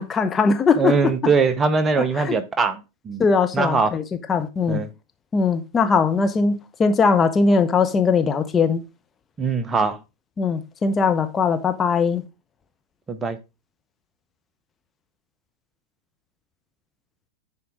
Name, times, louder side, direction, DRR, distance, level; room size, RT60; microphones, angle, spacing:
voice 1, 0.0-1.1 2.2-2.4 3.2-4.0 4.3-4.8 5.3-8.8 10.4-12.2, left 5 dB, 20° left, 0.6 m, -20 dB
voice 2, 0.8-2.8 3.0-3.2 3.5-3.9 4.7-4.9 9.4-10.0 13.1-13.4, right 4 dB, 20° right, 0.8 m, -21 dB
9.4 x 4.5 x 3.7 m
figure-of-eight pair, 90°, 0 cm